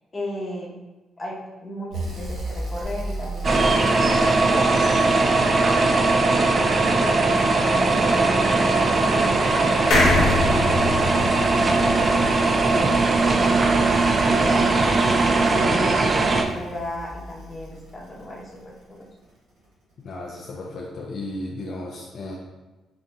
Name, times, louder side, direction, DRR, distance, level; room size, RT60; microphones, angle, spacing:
voice 1, 0.1-0.7 1.2-4.8 5.1-5.6 5.9-6.6 7.3-8.2 9.1-19.1, left 1 dB, 30° left, -3 dB, 0.8 m, -36 dB
sound 1, 1.9-6.1 7.4-18.6 20.1-20.2, right 3 dB, 85° right, 1.1 m, -30 dB
sound 2, 3.4-16.4, right 3 dB, 35° right, 0.3 m, -20 dB
sound 3, 9.9-13.4 13.8-13.9 14.1-14.2, left 3 dB, 75° left, 0.9 m, -24 dB
voice 2, 20.0-22.4, left 2 dB, 60° left, -2 dB, 0.4 m, -34 dB
3.9 x 2.7 x 2.3 m, 1.1 s
cardioid pair, 90°, 0 cm